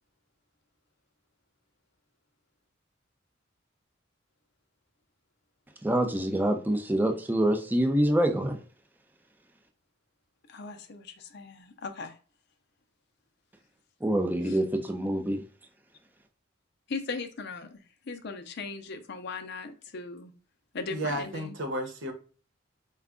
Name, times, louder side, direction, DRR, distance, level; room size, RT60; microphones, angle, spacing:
voice 1, 5.8-8.6 14.0-15.4, right 1 dB, 10° right, 0.5 m, -26 dB
voice 2, 10.5-12.2 14.5-14.6 16.9-20.3 20.7-21.5, left 4 dB, 55° left, 0.6 m, -38 dB
voice 3, 20.9-22.1, right 1 dB, 65° right, 0.9 m, -32 dB
4.5 x 2.3 x 3.7 m
head